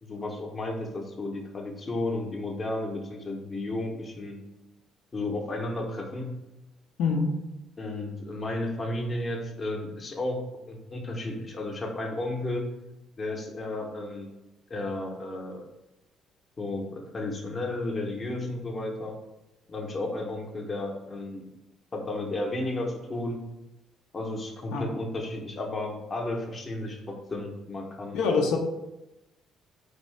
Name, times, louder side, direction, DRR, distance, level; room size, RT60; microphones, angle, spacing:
voice 1, 0.0-4.4 5.1-6.4 7.8-12.7 13.2-14.3 14.7-15.6 16.6-19.2 19.7-21.4 21.9-23.4 24.1-28.5, left 2 dB, 30° left, 1 dB, 0.6 m, -33 dB
voice 2, 7.0-7.3 24.7-24.9 28.1-28.6, left 4 dB, 90° left, 2 dB, 0.5 m, -24 dB
4.1 x 2.6 x 3.2 m, 0.95 s
cardioid pair, 125°, 0 cm